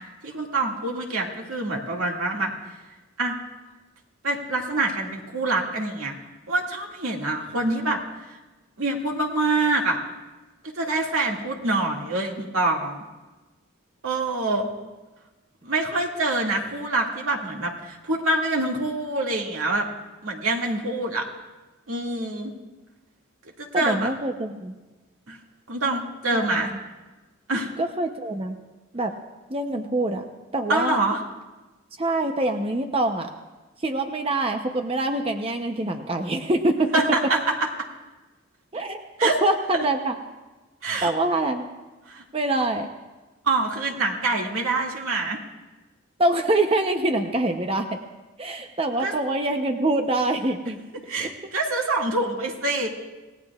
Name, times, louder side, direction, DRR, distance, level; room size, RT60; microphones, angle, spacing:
voice 1, 0.2-2.5 3.2-3.4 4.2-6.1 6.5-8.0 8.8-10.0 10.8-13.0 14.0-14.7 15.6-19.9 20.2-21.2 21.9-22.5 23.6-24.1 25.3-25.4 25.7-26.7 27.5-27.7 30.7-31.2 36.9-37.7 39.2-39.4 39.7-39.8 40.8-41.1 42.1-42.2 43.5-45.4 48.5-48.6 49.0-49.1 51.1-52.9, right 2 dB, 90° right, -1 dB, 2.1 m, -25 dB
voice 2, 23.7-24.7 26.3-26.4 27.8-28.6 28.9-29.1 29.5-30.2 30.5-31.0 32.0-33.3 33.8-36.9 38.7-40.1 41.0-41.7 42.3-42.9 46.2-48.0 48.4-50.8, right 2 dB, 25° right, 5 dB, 0.7 m, -25 dB
27.5 x 17.5 x 2.4 m, 1.2 s
head